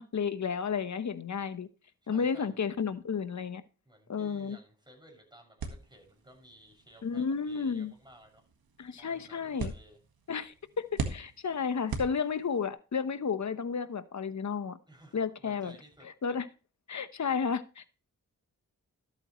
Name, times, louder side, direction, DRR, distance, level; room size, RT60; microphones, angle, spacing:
voice 1, 0.0-1.7 2.1-3.6 4.1-4.6 7.0-7.9 8.8-9.7 10.3-14.8 15.1-15.7 16.2-16.5 16.9-17.9, left 6 dB, 50° left, 12 dB, 1.0 m, -32 dB
voice 2, 2.0-2.9 3.8-8.4 9.0-10.0 14.9-16.1, equal, 10° right, 2 dB, 6.3 m, -56 dB
sound 1, 5.6-12.7, right 4 dB, 75° right, 1.7 m, -42 dB
12.5 x 8.4 x 3.1 m, 0.34 s
cardioid pair, 50°, 36 cm